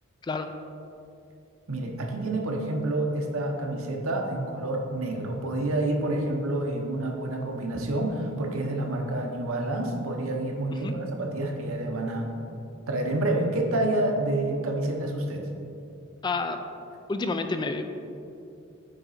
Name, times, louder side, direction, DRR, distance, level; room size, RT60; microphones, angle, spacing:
voice 1, 1.7-12.3 12.9-15.5, right 1 dB, 85° right, 2 dB, 0.9 m, -28 dB
voice 2, 16.2-16.6 17.1-17.8, left 3 dB, 20° left, 7 dB, 0.3 m, -29 dB
9.1 x 3.9 x 4.1 m, 2.6 s
head